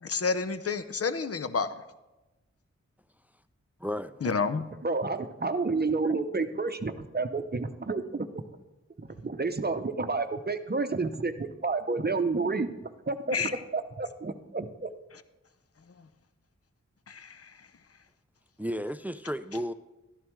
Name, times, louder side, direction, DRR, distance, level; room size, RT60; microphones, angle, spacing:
voice 1, 0.0-1.7 4.2-4.6 13.3-13.5 17.1-17.5, left 5 dB, 55° left, 12 dB, 0.7 m, -29 dB
voice 2, 3.8-4.1 18.6-19.7, equal, 5° right, 13 dB, 0.4 m, -33 dB
voice 3, 4.8-8.4 9.0-12.7 13.1-14.9, right 3 dB, 35° right, 9 dB, 0.7 m, -30 dB
12.5 x 11.0 x 3.2 m, 1.0 s
cardioid pair, 45°, 29 cm